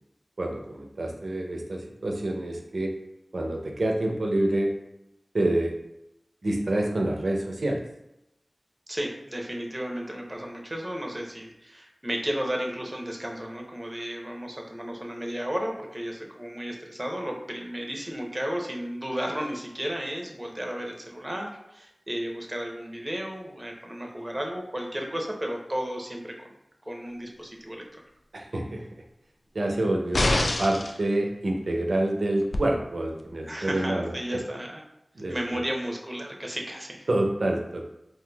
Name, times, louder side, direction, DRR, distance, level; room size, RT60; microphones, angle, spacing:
voice 1, 0.4-2.9 3.3-4.8 5.3-5.7 6.4-7.8 28.3-28.8 29.5-34.4 35.1-35.6 37.1-37.9, right 1 dB, 85° right, 1 dB, 0.5 m, -27 dB
voice 2, 8.9-26.5 26.9-28.0 33.5-34.9 35.3-37.1, equal, 25° right, 1 dB, 0.6 m, -33 dB
sound 1, 30.1-31.0 32.5-32.6, left 1 dB, 75° left, 0.3 m, -24 dB
3.9 x 2.5 x 2.2 m, 0.86 s
wide cardioid pair, 40°, 0 cm